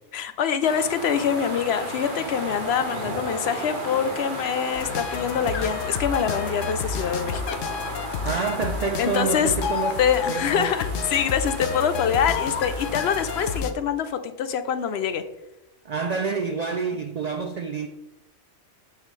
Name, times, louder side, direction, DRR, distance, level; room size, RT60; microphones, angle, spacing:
voice 1, 0.1-7.6 8.3-8.4 9.0-9.5 10.0-15.3, left 7 dB, 65° left, 0.8 m, -25 dB
sound 1, 0.6-13.6, right 1 dB, 45° right, 1.6 m, -35 dB
sound 2, 4.8-13.7, left 6 dB, 90° left, 1.0 m, -31 dB
voice 2, 8.2-10.0 10.3-10.7 15.8-17.9, right 5 dB, 65° right, 0.4 m, -28 dB
7.1 x 6.6 x 3.2 m
omnidirectional pair, 1.3 m